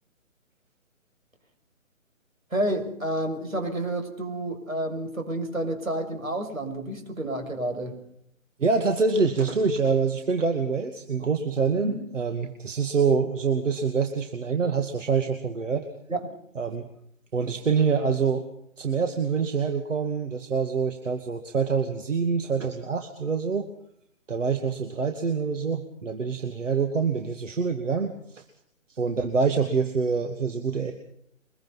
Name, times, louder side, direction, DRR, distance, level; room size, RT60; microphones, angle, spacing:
voice 1, 2.5-8.0 11.8-11.9 16.1-16.3, right 1 dB, 85° right, 6 dB, 6.2 m, -30 dB
voice 2, 8.6-15.9 16.6-16.9 17.3-18.4 18.8-23.7 24.3-28.4 28.9-30.9, right 5 dB, 65° right, 6 dB, 2.6 m, -26 dB
24.0 x 22.5 x 5.6 m, 0.70 s
figure-of-eight pair, 145°, 40 cm